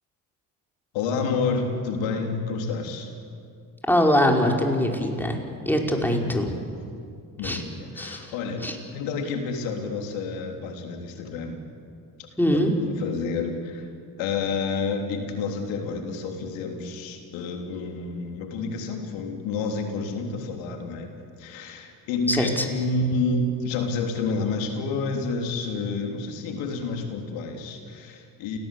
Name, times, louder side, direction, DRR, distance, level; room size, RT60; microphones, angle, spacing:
voice 1, 0.9-3.1 6.1-6.5 7.4-11.6 12.5-13.9 14.2-21.1 21.4-28.6, left 3 dB, 85° left, 3 dB, 3.5 m, -29 dB
voice 2, 3.9-5.4 5.6-6.5 7.4-7.6 8.0-8.3 8.6-8.8 12.4-12.7 22.3-22.6, equal, 5° left, 1 dB, 4.9 m, -22 dB
29.0 x 18.0 x 8.4 m, 2.4 s
supercardioid pair, 75°, 45 cm